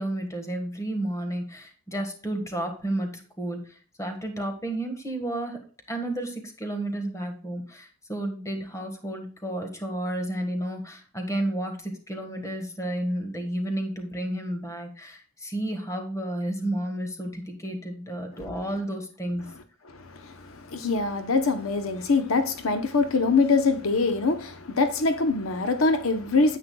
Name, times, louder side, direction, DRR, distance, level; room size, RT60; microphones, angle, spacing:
voice 1, 0.0-5.6 5.9-19.5, right 1 dB, 15° left, 1.5 m, -31 dB
voice 2, 19.9-26.6, left 3 dB, 70° left, 0.8 m, -24 dB
9.8 x 8.4 x 2.3 m
head